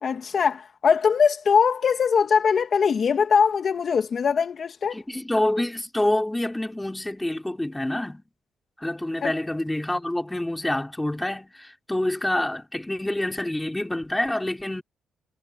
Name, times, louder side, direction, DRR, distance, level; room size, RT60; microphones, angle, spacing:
voice 1, 0.0-5.0 9.2-9.3, left 6 dB, 50° left, 1.8 m, -21 dB
voice 2, 4.9-8.2 8.8-14.8, left 1 dB, 10° left, 4.6 m, -27 dB
cardioid pair, 90°, 0 cm